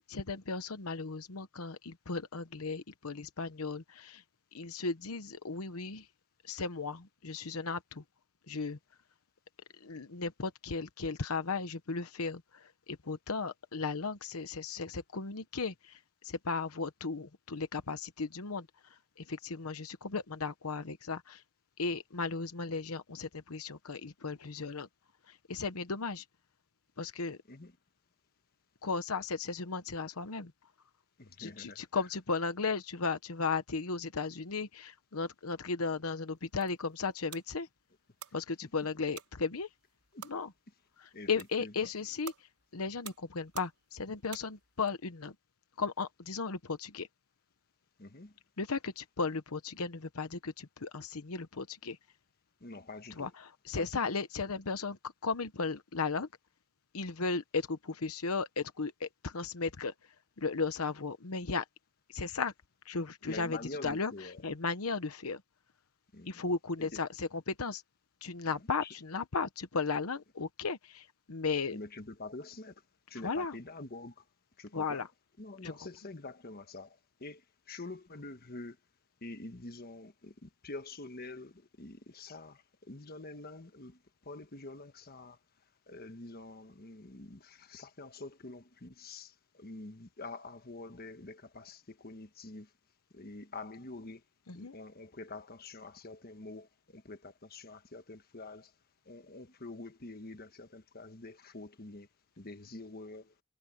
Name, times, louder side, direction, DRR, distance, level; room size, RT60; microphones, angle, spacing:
voice 1, 0.1-4.2 4.5-6.1 6.4-8.0 8.5-8.8 9.8-18.7 19.2-21.4 21.8-24.9 25.3-26.2 27.0-27.4 28.8-30.5 31.4-37.7 38.3-39.7 40.2-40.5 41.0-42.3 42.7-45.3 45.8-47.1 48.6-52.0 53.2-56.3 56.9-59.9 60.4-61.6 62.1-62.5 62.8-63.6 63.8-64.1 64.4-65.4 66.3-67.8 68.2-71.8 73.2-73.6 74.7-75.1 75.6-75.7 94.5-94.7, left 4 dB, 75° left, 1.0 m, -35 dB
voice 2, 31.2-32.0 38.6-38.7 40.1-40.4 41.1-41.9 48.0-48.4 52.6-53.3 53.7-54.1 63.2-64.4 66.1-66.3 66.8-67.0 68.6-68.9 71.7-72.8 73.1-74.3 74.6-75.1 75.4-78.8 79.2-85.4 85.9-92.7 93.1-94.2 94.5-98.7 99.0-102.1 102.4-103.4, left 2 dB, 45° left, 1.4 m, -46 dB
sound 1, 36.3-44.9, right 9 dB, 90° right, 4.3 m, -52 dB
head